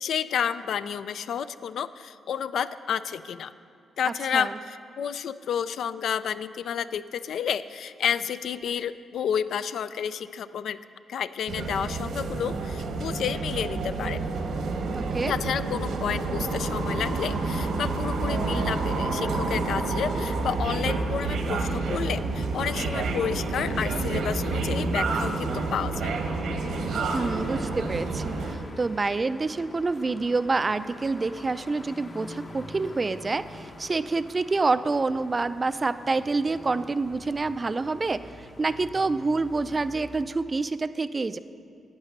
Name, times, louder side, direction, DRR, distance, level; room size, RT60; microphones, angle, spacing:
voice 1, 0.0-3.5 4.0-10.8 11.1-14.2 15.3-26.1, left 8 dB, 75° left, 14 dB, 0.3 m, -30 dB
voice 2, 4.1-4.6 14.9-15.3 27.1-41.4, right 3 dB, 30° right, 13 dB, 0.3 m, -27 dB
sound 1, 11.5-28.6, right 3 dB, 80° right, 1.0 m, -29 dB
sound 2, 26.6-40.2, left 2 dB, 40° left, 0.8 m, -46 dB
11.0 x 8.8 x 5.3 m, 2.5 s
cardioid pair, 90°, 0 cm